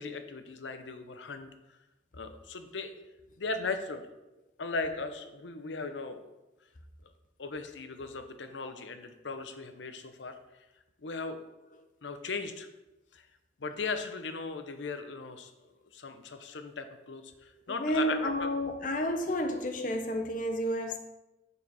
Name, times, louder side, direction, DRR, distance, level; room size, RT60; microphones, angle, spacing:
voice 1, 0.0-1.5 2.1-2.9 3.4-4.0 4.6-6.3 7.0-7.1 7.4-10.4 11.0-11.4 12.0-12.7 13.1-13.3 13.6-18.5 19.0-19.1, left 4 dB, 85° left, 8 dB, 0.7 m, -38 dB
voice 2, 17.7-21.0, equal, 45° left, 6 dB, 0.8 m, -31 dB
6.8 x 6.6 x 4.2 m, 1.0 s
head